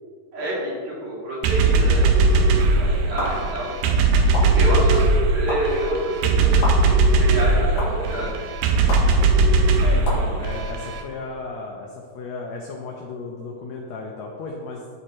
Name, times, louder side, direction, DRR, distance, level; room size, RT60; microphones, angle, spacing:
voice 1, 0.3-3.7 4.4-8.3, right 1 dB, 60° right, -7 dB, 3.5 m, -28 dB
sound 1, 1.4-11.0, right 3 dB, 80° right, 2.2 m, -19 dB
sound 2, 3.2-3.3 4.3-4.4 5.5-5.6 6.6-6.7 7.8-7.9 8.9-9.0 10.0-10.2, left 2 dB, 55° left, 2.7 m, -27 dB
voice 2, 9.8-14.8, left 3 dB, 80° left, 0 dB, 1.6 m, -34 dB
13.0 x 4.6 x 3.0 m, 2.1 s
omnidirectional pair, 4.0 m